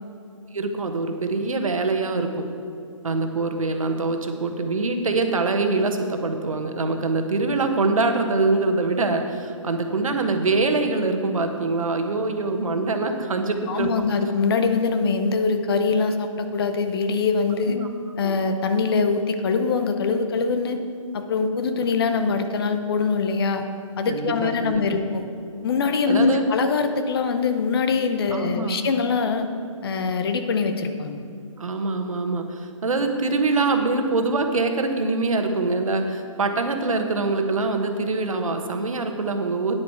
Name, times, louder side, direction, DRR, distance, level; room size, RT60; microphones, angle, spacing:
voice 1, 0.5-2.4 3.0-13.9 17.7-17.9 18.2-18.4 24.1-25.0 26.1-26.4 28.3-28.8 31.6-39.7, right 3 dB, 75° right, 5 dB, 1.3 m, -24 dB
voice 2, 13.7-17.8 18.2-20.8 21.1-23.7 24.0-25.2 25.6-29.5 29.8-31.2, left 4 dB, 45° left, 7 dB, 0.9 m, -23 dB
9.7 x 8.9 x 4.7 m, 2.5 s
hypercardioid pair, 150°, 17 cm